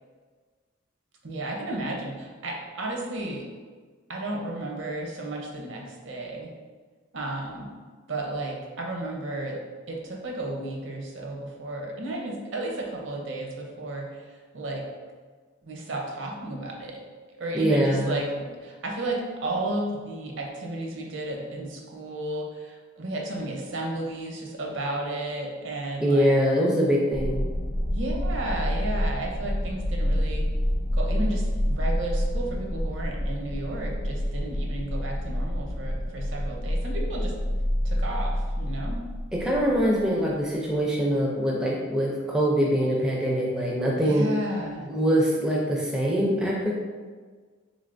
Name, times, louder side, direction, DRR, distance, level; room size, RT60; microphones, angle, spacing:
voice 1, 1.2-3.4 4.1-6.5 7.1-7.7 8.1-9.6 9.9-14.1 14.5-14.8 15.7-17.0 17.3-26.4 27.9-30.4 30.9-37.3 37.8-39.0 44.0-44.9, right 2 dB, 75° right, 0 dB, 0.6 m, -33 dB
voice 2, 17.5-18.2 26.0-27.4 39.3-44.3 44.9-46.7, equal, 5° right, -3 dB, 0.4 m, -23 dB
sound 1, 27.1-40.0, equal, 75° left, 0.6 m, -28 dB
3.6 x 3.2 x 2.5 m, 1.5 s
head